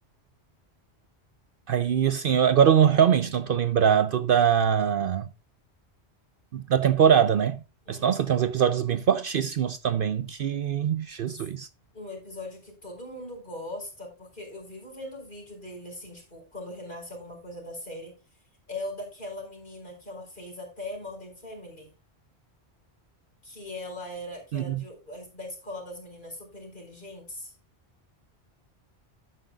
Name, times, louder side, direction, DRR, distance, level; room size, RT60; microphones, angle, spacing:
voice 1, 1.7-5.3 6.5-7.6 7.9-11.7 24.5-24.8, right 8 dB, 60° right, 0.7 m, -22 dB
voice 2, 7.8-8.3 11.3-11.4 11.9-18.1 18.7-21.9 23.4-27.5, left 1 dB, 45° left, 5.0 m, -40 dB
12.0 x 9.2 x 2.3 m
omnidirectional pair, 1.1 m